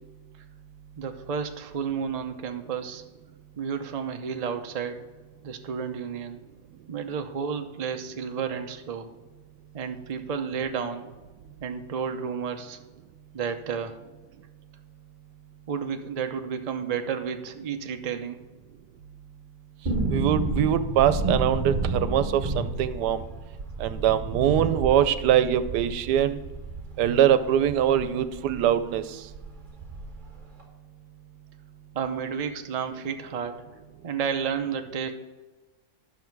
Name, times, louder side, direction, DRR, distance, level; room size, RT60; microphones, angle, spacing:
voice 1, 1.0-3.0 3.6-5.0 5.4-6.4 6.9-9.1 9.7-11.1 11.6-12.8 13.3-14.0 15.7-18.4 31.9-33.6 34.0-35.1, right 6 dB, 50° right, 6 dB, 0.4 m, -31 dB
sound 1, 19.8-28.7 28.9-29.0 29.3-30.3 30.6-30.7, right 2 dB, 30° right, 1.5 m, -31 dB
voice 2, 20.1-23.2 23.8-26.4 27.0-29.2, right 10 dB, 90° right, 13 dB, 1.2 m, -23 dB
12.0 x 6.3 x 4.6 m, 1.2 s
omnidirectional pair, 1.7 m